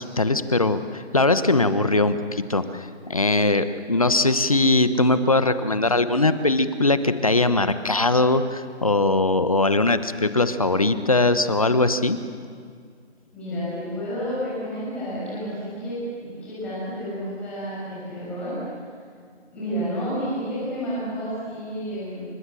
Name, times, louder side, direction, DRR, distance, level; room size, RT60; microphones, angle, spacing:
voice 1, 0.0-12.2, left 2 dB, 30° left, 12 dB, 1.1 m, -21 dB
voice 2, 13.3-18.6 19.5-22.2, equal, 5° left, -10 dB, 6.8 m, -30 dB
29.5 x 25.5 x 7.6 m, 2.1 s
figure-of-eight pair, 175°, 35 cm